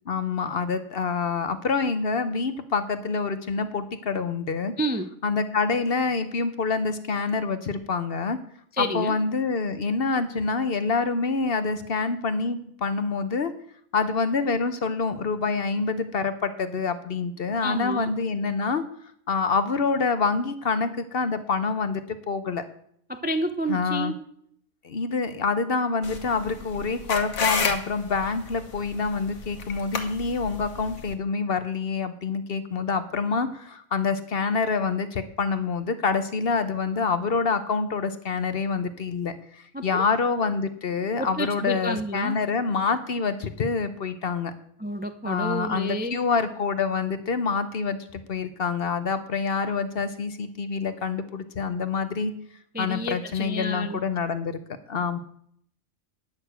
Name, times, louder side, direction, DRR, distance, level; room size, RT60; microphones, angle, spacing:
voice 1, 0.1-4.7 5.2-8.4 8.8-13.5 13.9-18.8 19.3-22.6 23.7-24.1 24.8-44.5 45.2-52.3 52.8-54.6 54.9-55.2, left 4 dB, 50° left, 11 dB, 0.9 m, -26 dB
voice 2, 4.8-5.1 8.8-9.2 17.6-18.1 23.1-24.2 39.7-40.1 41.2-42.4 44.8-46.2 52.7-54.0, equal, 15° right, 8 dB, 0.3 m, -30 dB
sound 1, 26.0-31.1, left 5 dB, 75° left, 1.7 m, -32 dB
10.0 x 6.5 x 7.9 m, 0.66 s
omnidirectional pair, 1.5 m